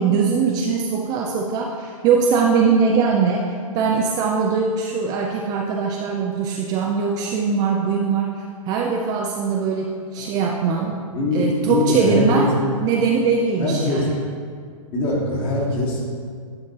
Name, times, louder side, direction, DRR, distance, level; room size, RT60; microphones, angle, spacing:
voice 1, 0.0-8.3 8.7-11.0 11.3-12.5 12.8-14.2, right 5 dB, 20° right, 0 dB, 0.4 m, -21 dB
voice 2, 11.1-12.5 13.6-14.1 14.9-16.1, left 1 dB, 25° left, -4 dB, 1.8 m, -22 dB
10.0 x 5.8 x 2.9 m, 2.1 s
figure-of-eight pair, 120°, 18 cm